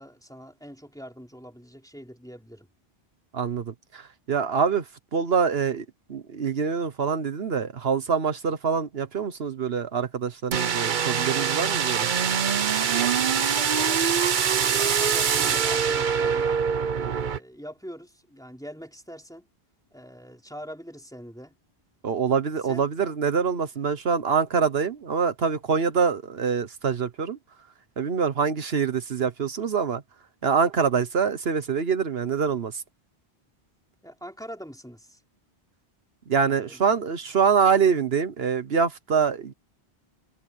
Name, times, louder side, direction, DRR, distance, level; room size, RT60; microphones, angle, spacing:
voice 1, 0.0-2.7 12.7-16.6 16.9-19.5 19.9-21.6 22.6-22.9 34.0-35.2 36.5-36.8, equal, 5° left, 3.6 m, -43 dB
voice 2, 3.3-4.8 5.1-12.1 22.0-27.4 28.0-30.0 30.4-32.8 36.3-39.5, right 6 dB, 75° right, 1.3 m, -25 dB
sound 1, 10.5-17.4, right 7 dB, 55° right, 0.9 m, -24 dB
omnidirectional pair, 1.0 m